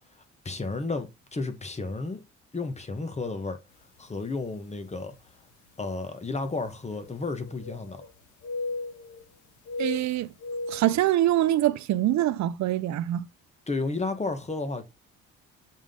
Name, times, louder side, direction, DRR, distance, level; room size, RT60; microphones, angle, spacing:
voice 1, 0.4-2.2 2.5-3.6 4.0-5.1 5.8-8.0 13.7-14.8, left 3 dB, 20° left, 1.1 m, -32 dB
sound 1, 4.0-4.1 4.9-5.0 6.9-8.1 8.4-9.3 9.7-11.0, left 3 dB, 85° left, 1.9 m, -36 dB
voice 2, 9.8-10.3 10.7-13.3, right 13 dB, 65° right, 0.5 m, -24 dB
7.4 x 3.7 x 3.7 m
cardioid pair, 90°, 30 cm